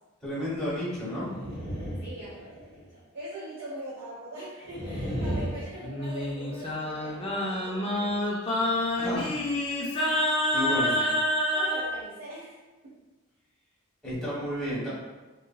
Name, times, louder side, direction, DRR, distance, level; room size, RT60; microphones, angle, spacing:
voice 1, 0.2-1.3 9.0-9.3 10.5-10.9 14.0-14.9, equal, 5° left, -11 dB, 1.2 m, -31 dB
sound 1, 1.1-2.8 4.6-5.6, equal, 55° right, 1.3 m, -33 dB
voice 2, 2.0-8.9 9.9-12.6 12.8-13.0, right 1 dB, 80° right, -8 dB, 0.7 m, -42 dB
Singing, 5.8-11.9, left 1 dB, 25° left, 0.4 m, -28 dB
2.9 x 2.4 x 2.3 m, 1.2 s
head